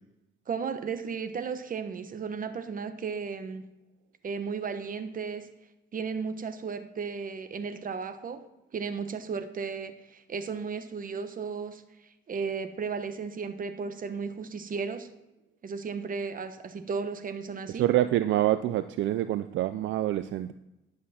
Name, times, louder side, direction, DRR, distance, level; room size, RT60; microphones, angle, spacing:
voice 1, 0.5-3.6 4.2-5.5 5.9-8.4 8.7-11.8 12.3-15.1 15.6-17.8, right 5 dB, 45° right, 9 dB, 1.1 m, -34 dB
voice 2, 17.8-20.5, right 13 dB, 75° right, 12 dB, 0.4 m, -26 dB
11.5 x 7.3 x 4.2 m, 0.94 s
cardioid pair, 90°, 20 cm